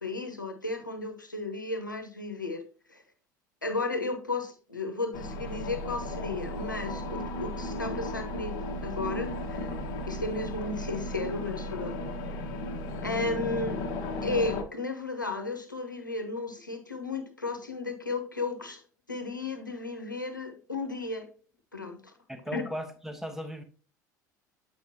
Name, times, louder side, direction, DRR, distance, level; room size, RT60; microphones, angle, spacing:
voice 1, 0.0-2.6 2.9-3.0 3.6-9.7 10.1-12.0 13.0-13.8 14.2-18.8 19.1-21.3 21.7-22.1 22.5-22.6, left 3 dB, 85° left, 1.0 m, -34 dB
sound 1, 5.1-14.6, left 1 dB, 50° left, 1.2 m, -35 dB
voice 2, 22.3-23.6, equal, 5° right, 1.2 m, -37 dB
8.1 x 5.1 x 2.8 m
figure-of-eight pair, 70°, 10 cm